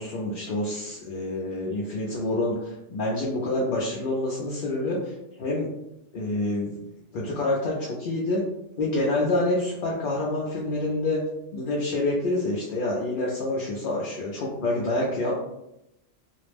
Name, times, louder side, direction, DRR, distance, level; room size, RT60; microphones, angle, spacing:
voice 1, 0.0-5.7 6.1-6.8 7.1-8.4 8.8-11.2 11.5-15.3, left 2 dB, 60° left, -5 dB, 0.6 m, -27 dB
2.4 x 2.0 x 3.2 m, 0.85 s
omnidirectional pair, 1.2 m